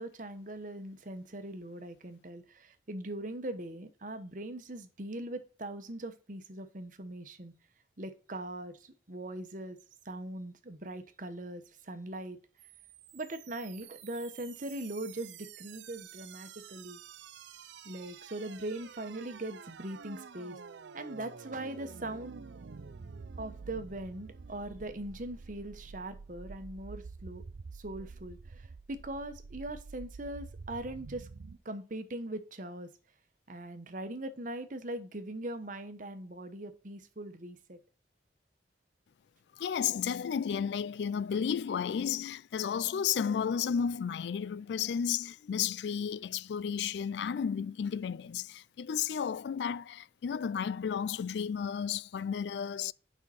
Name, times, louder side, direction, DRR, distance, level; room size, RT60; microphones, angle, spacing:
voice 1, 0.0-7.5 8.0-9.8 10.0-12.4 13.1-17.0 17.8-20.6 20.9-22.4 23.4-27.4 27.7-31.3 31.6-32.9 33.5-37.8, right 1 dB, 50° right, 1.1 m, -41 dB
sound 1, 12.6-31.6, right 5 dB, 90° right, 0.5 m, -49 dB
voice 2, 39.6-52.9, left 7 dB, 75° left, 0.3 m, -33 dB
8.8 x 5.6 x 4.1 m
head